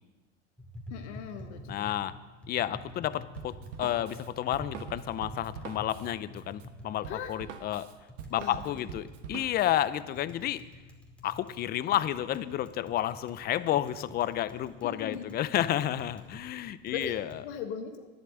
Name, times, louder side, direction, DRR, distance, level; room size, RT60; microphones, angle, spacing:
Tap, 0.6-17.4, left 1 dB, 5° left, 2.4 m, -49 dB
voice 1, 0.9-1.9 7.1-7.4 8.4-8.8 14.8-15.3 16.9-18.1, left 7 dB, 70° left, 6 dB, 1.2 m, -39 dB
voice 2, 1.7-2.1 2.5-7.9 8.3-10.6 11.2-17.2, left 12 dB, 25° left, 16 dB, 0.5 m, -31 dB
Drum kit, 3.4-9.8, right 7 dB, 75° right, 1.4 m, -44 dB
11.0 x 7.9 x 8.0 m, 1.2 s
hypercardioid pair, 115°, 36 cm